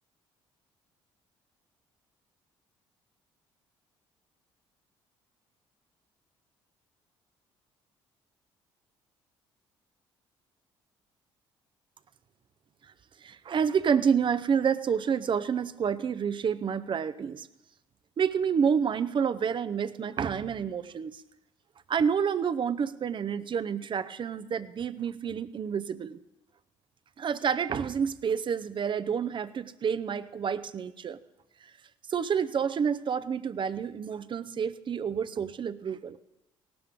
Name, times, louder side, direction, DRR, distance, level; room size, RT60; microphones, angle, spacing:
voice 1, 13.2-17.5 18.2-21.2 21.9-26.2 27.2-31.2 32.1-36.2, right 7 dB, 40° right, 13 dB, 0.7 m, -29 dB
17.5 x 13.0 x 3.7 m, 0.90 s
hypercardioid pair, 60°, 12 cm